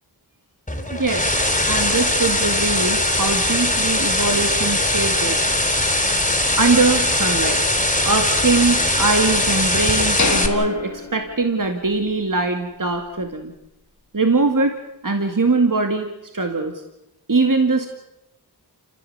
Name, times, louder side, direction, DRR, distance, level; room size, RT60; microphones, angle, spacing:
sound 1, 0.7-10.5, left 1 dB, 20° left, 3.5 m, -20 dB
voice 1, 0.9-5.5 6.6-7.6 8.1-13.5 14.1-16.8 17.3-17.9, right 3 dB, 50° right, 5 dB, 2.3 m, -22 dB
sound 2, 10.2-12.1 12.4-12.5 13.1-13.2, left 4 dB, 45° left, 1.2 m, -27 dB
29.5 x 16.5 x 8.2 m, 0.92 s
wide cardioid pair, 60°, 41 cm